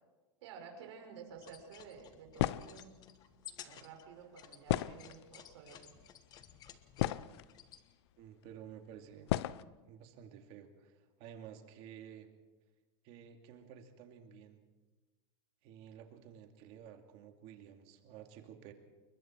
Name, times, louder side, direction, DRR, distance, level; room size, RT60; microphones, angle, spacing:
voice 1, 0.4-2.9 3.6-5.8, right 6 dB, 75° right, 2 dB, 5.8 m, -52 dB
sound 1, 1.3-7.8, left 10 dB, 30° left, 1.3 m, -55 dB
sound 2, 2.4-2.8 4.7-5.4 6.2-6.3 6.7-7.5 8.4-8.5 9.3-9.6, left 15 dB, 70° left, 0.7 m, -34 dB
voice 2, 8.2-9.3 9.9-12.3 13.0-14.6 15.6-18.7, right 9 dB, 45° right, 5 dB, 2.6 m, -53 dB
29.0 x 22.0 x 4.6 m, 1.2 s
supercardioid pair, 160°, 14 cm